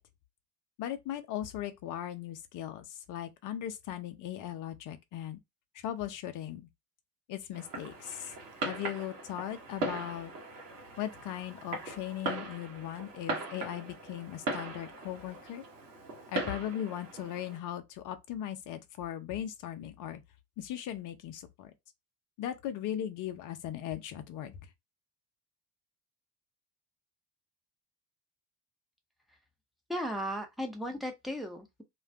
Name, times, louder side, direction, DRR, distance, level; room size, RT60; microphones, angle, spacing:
voice 1, 0.8-5.4 5.7-6.6 7.3-8.3 8.6-10.3 11.0-15.6 16.3-20.2 20.6-21.7 22.4-24.6, left 11 dB, 40° left, 0.7 m, -38 dB
Fireworks, 7.5-17.6, right 2 dB, 75° right, 1.1 m, -39 dB
voice 2, 29.9-31.8, equal, ahead, 0.7 m, -36 dB
2.5 x 2.3 x 3.4 m
figure-of-eight pair, 60°, 48 cm